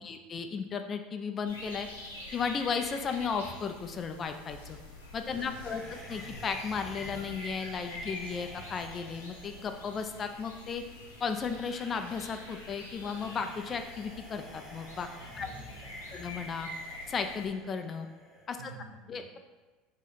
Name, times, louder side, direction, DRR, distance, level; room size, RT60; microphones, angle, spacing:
voice 1, 0.0-1.9 2.3-4.8 5.1-10.8 11.2-15.1 15.4-15.5 16.1-16.7 17.1-18.1 18.5-18.7 19.1-19.4, left 5 dB, 35° left, 7 dB, 0.3 m, -35 dB
sound 1, 1.5-17.5, left 1 dB, 85° left, 0.7 m, -46 dB
voice 2, 5.3-5.9 15.2-16.2 18.6-19.2, right 4 dB, 80° right, -1 dB, 0.6 m, -51 dB
sound 2, 5.5-18.5, equal, 10° right, 0.8 m, -51 dB
2.8 x 2.3 x 4.2 m, 1.2 s
hypercardioid pair, 75°, 0 cm